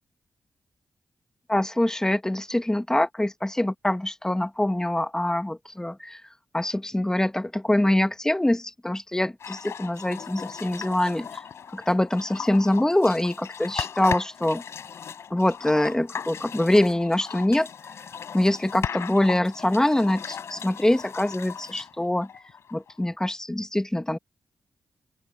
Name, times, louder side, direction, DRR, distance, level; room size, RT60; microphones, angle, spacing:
voice 1, 1.5-6.2 6.5-11.4 11.7-14.6 15.3-17.7 18.3-22.3 22.7-24.2, left 1 dB, 10° left, 1.9 m, -24 dB
sound 1, 9.4-22.9, left 7 dB, 75° left, 6.0 m, -37 dB
open air
cardioid pair, 50°, 5 cm